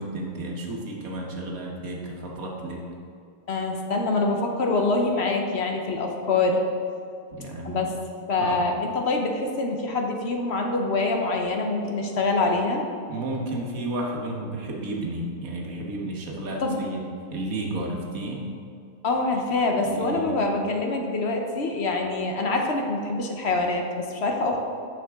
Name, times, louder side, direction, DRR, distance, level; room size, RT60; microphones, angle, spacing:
voice 1, 0.0-2.8 7.3-7.9 8.4-8.7 13.1-17.0 17.3-18.5 19.8-20.5, right 1 dB, 90° right, -1 dB, 1.7 m, -32 dB
voice 2, 3.5-6.6 7.6-7.9 8.3-12.8 16.6-16.8 19.0-24.6, left 3 dB, 55° left, 2 dB, 1.0 m, -25 dB
9.1 x 6.6 x 3.5 m, 2.4 s
omnidirectional pair, 1.4 m